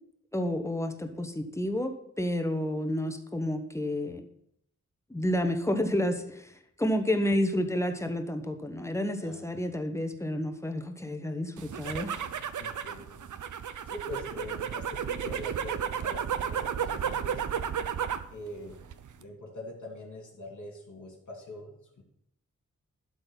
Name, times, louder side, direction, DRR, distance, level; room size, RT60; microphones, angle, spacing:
voice 1, 0.3-4.2 5.1-6.5 6.8-12.2, left 1 dB, 10° left, 6 dB, 1.0 m, -30 dB
sound 1, 11.6-18.3 18.7-19.2, right 8 dB, 75° right, 0.6 m, -33 dB
voice 2, 12.6-13.2 13.9-17.4 18.3-18.8 19.2-22.0, left 1 dB, 75° left, -2 dB, 3.2 m, -43 dB
12.0 x 4.0 x 5.7 m, 0.72 s
wide cardioid pair, 70°, 30 cm